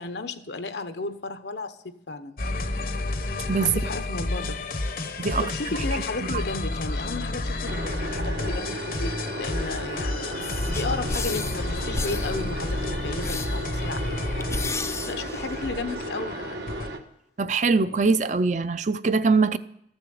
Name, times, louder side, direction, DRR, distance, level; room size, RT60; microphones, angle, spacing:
voice 1, 0.0-2.4 3.6-4.6 5.4-10.4 10.7-16.4, left 3 dB, 80° left, 1.0 m, -34 dB
sound 1, 2.4-16.9, left 2 dB, 55° left, 0.9 m, -31 dB
voice 2, 3.5-3.8 5.2-5.5 6.2-6.4 17.4-19.6, right 4 dB, 40° right, 0.5 m, -22 dB
sound 2, 7.6-17.0, right 1 dB, 85° right, 1.4 m, -35 dB
sound 3, 10.4-16.0, left 4 dB, 15° left, 0.4 m, -34 dB
13.5 x 7.0 x 7.9 m
head